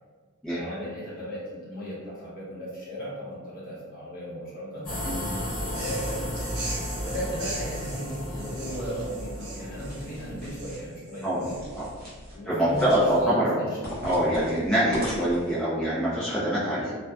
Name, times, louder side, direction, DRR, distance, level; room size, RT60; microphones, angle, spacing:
voice 1, 0.5-4.9 5.7-6.3 7.0-11.5 12.3-13.4, equal, 40° left, -7 dB, 0.9 m, -36 dB
sound 1, 4.8-10.9, equal, 75° left, 1.0 m, -34 dB
sound 2, 5.6-11.9, right 2 dB, 80° right, 0.9 m, -41 dB
sound 3, 8.5-9.2 9.7-10.8 11.5-12.4 12.7-13.2 13.8-15.6, left 1 dB, 45° right, 0.6 m, -40 dB
voice 2, 12.4-13.6 14.0-17.0, right 1 dB, ahead, -11 dB, 0.4 m, -24 dB
2.6 x 2.1 x 2.3 m, 1.4 s
head